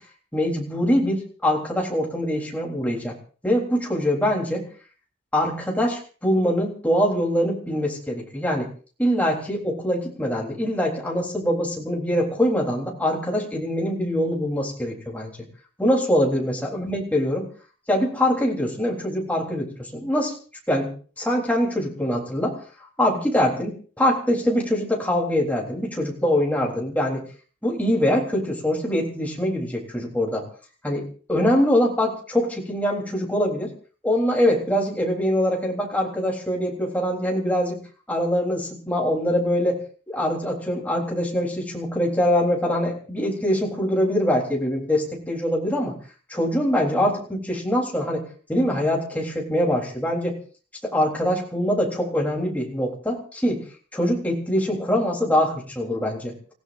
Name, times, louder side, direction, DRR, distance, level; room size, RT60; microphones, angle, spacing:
voice 1, 0.3-3.2 3.4-4.7 5.3-8.7 9.0-15.4 15.8-17.5 17.9-20.3 20.7-20.9 21.2-22.6 23.0-27.2 27.6-30.4 30.8-31.0 31.3-33.7 34.0-37.8 38.1-45.9 46.3-50.4 50.8-53.6 53.9-56.3, equal, 10° left, -2 dB, 3.6 m, -23 dB
30.0 x 16.0 x 2.6 m, 0.40 s
head